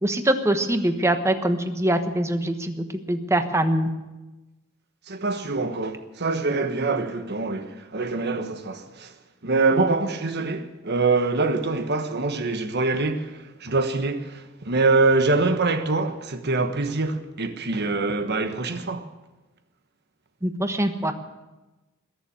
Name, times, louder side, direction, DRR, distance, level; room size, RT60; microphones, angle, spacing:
voice 1, 0.0-2.7 3.1-3.9 20.4-21.1, right 1 dB, 15° right, 1.2 m, -23 dB
voice 2, 5.1-19.1, right 3 dB, 55° right, 1.3 m, -24 dB
21.0 x 7.2 x 9.6 m
head